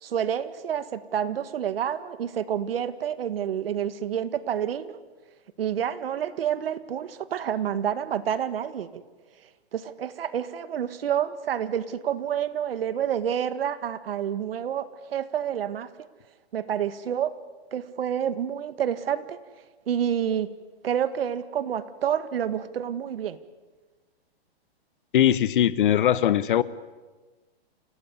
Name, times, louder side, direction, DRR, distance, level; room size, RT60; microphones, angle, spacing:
voice 1, 0.0-5.0 5.6-9.0 9.7-15.9 16.5-17.3 17.7-19.4 19.9-20.5 20.8-23.4, right 9 dB, 60° right, 1.9 m, -28 dB
voice 2, 25.1-26.6, left 11 dB, 50° left, 1.1 m, -20 dB
29.0 x 18.0 x 9.7 m
hypercardioid pair, 155°, 33 cm